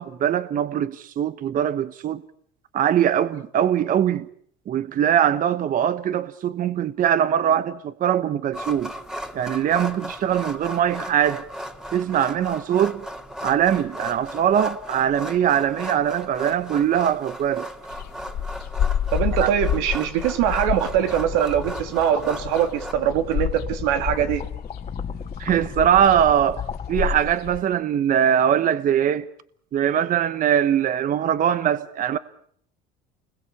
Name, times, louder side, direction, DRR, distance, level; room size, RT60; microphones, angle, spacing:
voice 1, 0.0-2.2 2.7-4.3 4.7-8.9 9.3-11.4 11.9-13.0 13.4-17.7 19.4-19.5 25.4-26.6 26.9-29.3 29.7-32.2, right 9 dB, 45° right, 1.1 m, -21 dB
sound 1, 8.5-22.9, equal, 5° right, 2.5 m, -36 dB
sound 2, 17.9-27.6, left 9 dB, 55° left, 2.4 m, -29 dB
voice 2, 19.1-24.4, right 10 dB, 85° right, 3.2 m, -22 dB
sound 3, 20.9-27.0, left 6 dB, 35° left, 2.2 m, -35 dB
29.5 x 21.5 x 8.5 m
supercardioid pair, 110°, 19 cm